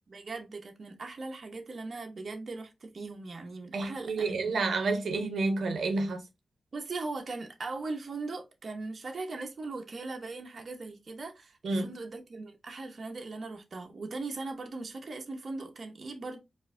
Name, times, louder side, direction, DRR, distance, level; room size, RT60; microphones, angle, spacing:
voice 1, 0.1-4.5 6.7-16.4, right 3 dB, 50° right, 0.8 m, -39 dB
voice 2, 3.7-6.2 11.6-11.9, right 3 dB, 80° right, 0.7 m, -29 dB
4.6 x 2.5 x 2.5 m
wide cardioid pair, 105°, 0 cm